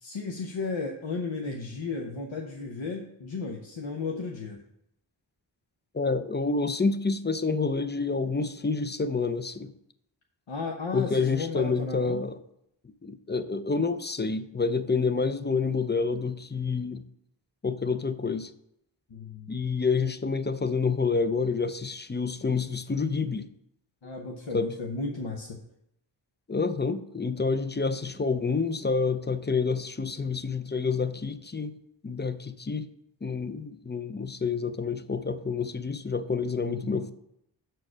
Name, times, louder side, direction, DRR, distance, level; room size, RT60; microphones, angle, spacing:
voice 1, 0.0-4.6 10.5-12.3 19.1-19.6 24.0-25.6 36.6-37.0, left 4 dB, 70° left, 0.8 m, -34 dB
voice 2, 5.9-9.7 10.9-12.4 13.0-17.0 17.6-18.5 19.5-23.5 24.5-24.8 26.5-31.8 32.0-32.9 33.2-37.1, left 4 dB, 25° left, 0.4 m, -28 dB
6.1 x 4.6 x 6.1 m
wide cardioid pair, 40°, 48 cm